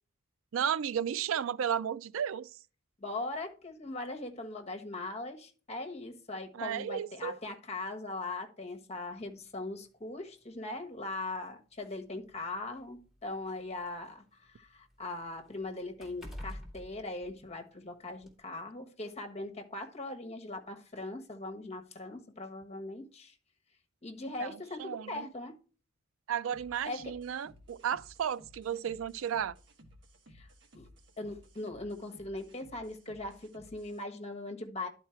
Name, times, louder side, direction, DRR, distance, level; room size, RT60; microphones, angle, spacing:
voice 1, 0.5-2.5 6.5-7.4 24.4-25.3 26.3-29.5, right 8 dB, 80° right, 0.4 m, -33 dB
voice 2, 3.0-23.4 24.0-25.5 26.9-27.1 30.3-30.5 30.7-30.9 31.2-34.9, left 2 dB, 30° left, 1.3 m, -40 dB
sound 1, 9.2-9.4 10.4-10.5 11.0-11.1 12.0-14.0 14.4-17.8 18.2-18.4, left 1 dB, ahead, 2.2 m, -48 dB
sound 2, 26.5-34.0, equal, 60° right, 1.5 m, -58 dB
11.0 x 4.4 x 4.5 m
head